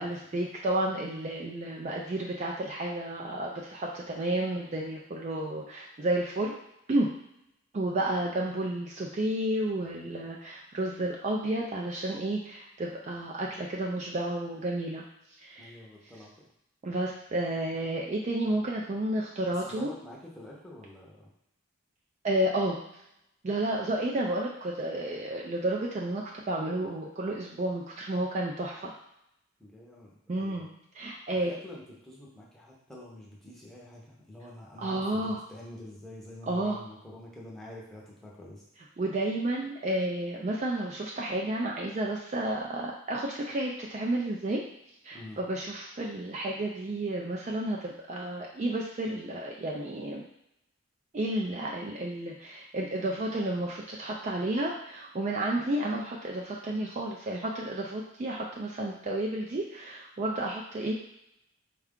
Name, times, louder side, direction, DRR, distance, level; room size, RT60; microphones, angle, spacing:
voice 1, 0.0-6.5 6.9-7.1 7.7-15.0 15.4-15.8 16.8-19.9 22.2-23.0 23.4-28.9 30.3-31.5 34.8-35.4 36.5-36.8 39.0-44.7 45.0-50.2 51.1-60.9, right 1 dB, 35° right, -1 dB, 0.3 m, -31 dB
voice 2, 15.6-16.5 19.4-21.3 29.6-30.7 31.4-38.6 45.1-45.4, left 1 dB, ahead, -5 dB, 0.7 m, -47 dB
4.4 x 2.3 x 3.6 m, 0.82 s
head